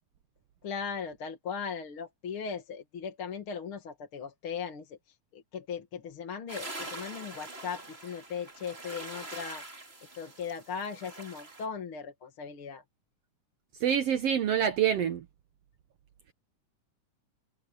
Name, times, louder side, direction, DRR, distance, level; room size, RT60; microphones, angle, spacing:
voice 1, 0.6-5.0 5.3-9.7 10.2-12.8, left 6 dB, 45° left, 2.4 m, -38 dB
sound 1, 6.5-11.7, right 2 dB, 20° right, 3.0 m, -44 dB
voice 2, 13.8-15.2, right 9 dB, 65° right, 1.6 m, -26 dB
omnidirectional pair, 3.8 m